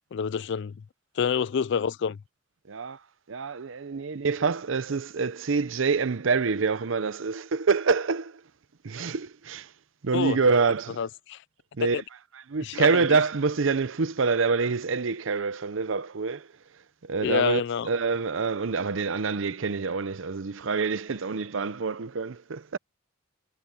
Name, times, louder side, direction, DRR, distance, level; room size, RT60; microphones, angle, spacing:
voice 1, 0.1-0.7 1.2-2.2 10.1-10.4 11.0-11.4 11.9-12.0 12.6-13.0 17.2-17.9, left 7 dB, 60° left, 0.4 m, -27 dB
voice 2, 2.7-3.0 3.3-8.4 8.8-9.7 10.0-11.0 11.8-12.0 12.5-16.5 17.0-22.8, right 4 dB, 70° right, 0.7 m, -26 dB
head